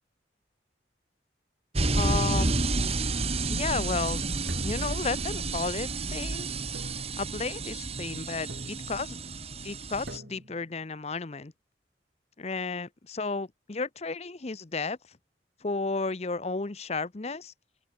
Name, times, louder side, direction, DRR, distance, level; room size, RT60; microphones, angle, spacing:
sound 1, 1.7-10.2, right 3 dB, 35° right, 1.9 m, -30 dB
voice 1, 1.9-2.6 3.5-4.2 4.6-6.5 7.2-9.2 9.6-11.5 12.4-15.0 15.6-17.5, left 3 dB, 35° left, 0.8 m, -33 dB
sound 2, 4.5-5.7 6.7-7.5 8.5-9.1 10.1-10.7, right 1 dB, 65° right, 4.6 m, -44 dB
open air
head